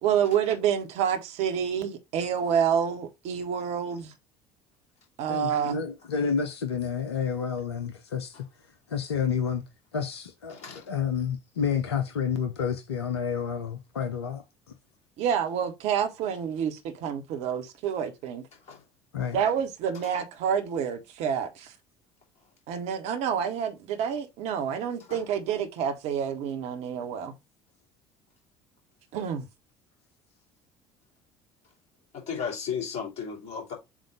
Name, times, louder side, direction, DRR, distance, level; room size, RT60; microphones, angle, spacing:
voice 1, 0.0-4.1 5.2-5.8 15.2-18.4 19.3-21.7 22.7-27.3 29.1-29.4, right 8 dB, 55° right, 1.2 m, -28 dB
voice 2, 5.3-8.4 8.9-9.6 9.9-10.6 10.8-14.4 19.1-19.4, left 7 dB, 75° left, 0.8 m, -29 dB
voice 3, 10.5-10.8 18.7-18.8 25.1-25.2 32.3-33.7, left 6 dB, 55° left, 3.3 m, -34 dB
7.5 x 2.6 x 4.9 m
figure-of-eight pair, 60°, 14 cm